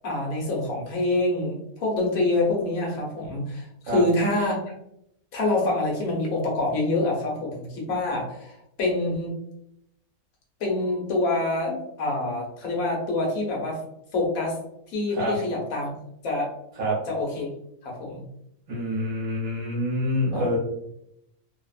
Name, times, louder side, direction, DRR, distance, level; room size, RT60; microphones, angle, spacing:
voice 1, 0.0-4.6 5.3-9.3 10.6-13.8 14.1-14.6 14.9-15.9 16.2-16.5 17.1-17.5 17.8-18.3 20.3-20.4, left 2 dB, 75° left, -2 dB, 1.2 m, -26 dB
voice 2, 18.7-20.6, equal, 65° right, -5 dB, 1.1 m, -26 dB
2.8 x 2.0 x 2.3 m, 0.78 s
omnidirectional pair, 1.5 m